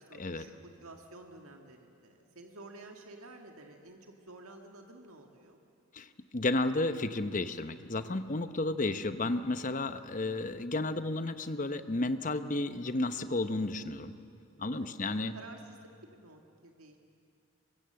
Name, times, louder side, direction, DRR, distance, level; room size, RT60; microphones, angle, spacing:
voice 1, 0.0-5.6 8.8-9.3 14.7-17.0, right 2 dB, 80° right, 3 dB, 1.8 m, -52 dB
voice 2, 5.9-14.1 14.6-15.3, left 2 dB, 35° left, 11 dB, 0.9 m, -32 dB
24.5 x 23.0 x 7.7 m, 2.3 s
head